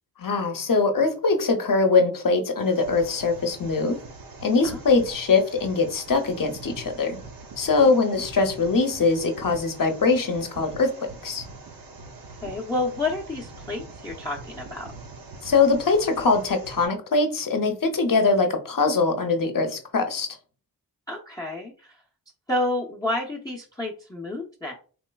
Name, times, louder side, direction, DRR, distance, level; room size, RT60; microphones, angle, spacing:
voice 1, 0.2-4.0 4.4-7.2 7.6-10.9 11.2-11.4 15.4-20.3, left 4 dB, 50° left, 6 dB, 0.7 m, -22 dB
sound 1, 2.6-16.9, right 3 dB, 55° right, 0.8 m, -43 dB
voice 2, 12.4-14.9 21.1-22.0 22.5-24.7, left 2 dB, 10° left, -3 dB, 0.6 m, -30 dB
3.1 x 3.0 x 2.3 m, 0.39 s
cardioid pair, 60°, 41 cm